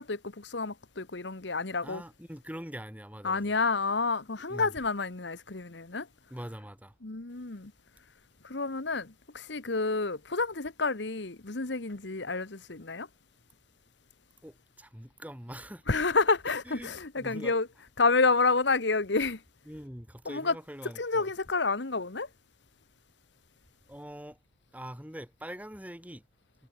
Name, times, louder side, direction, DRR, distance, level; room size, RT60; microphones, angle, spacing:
voice 1, 0.0-2.0 3.2-6.1 7.0-7.7 8.4-13.1 15.9-17.7 18.0-19.4 20.2-20.5 21.0-22.3, left 3 dB, 60° left, 1.3 m, -29 dB
voice 2, 1.8-3.5 4.5-4.7 6.3-6.9 14.4-15.8 16.7-17.6 19.7-21.3 23.9-24.4 24.7-26.2, equal, 10° right, 3.9 m, -43 dB
head